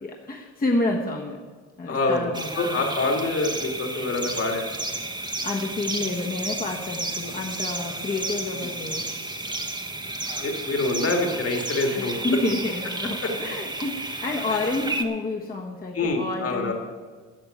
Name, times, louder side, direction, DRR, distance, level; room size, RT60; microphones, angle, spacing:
voice 1, 0.0-1.4 1.8-2.8 5.4-9.1 12.0-16.7, left 2 dB, 30° left, 0 dB, 1.3 m, -29 dB
voice 2, 1.9-2.3 2.6-4.7 8.5-8.7 10.3-12.1 13.2-13.3 15.9-16.7, left 2 dB, 50° left, 2 dB, 2.5 m, -25 dB
sound 1, 2.3-15.0, right 2 dB, 15° right, 1.2 m, -32 dB
12.0 x 6.7 x 8.7 m, 1.5 s
cardioid pair, 90°, 30 cm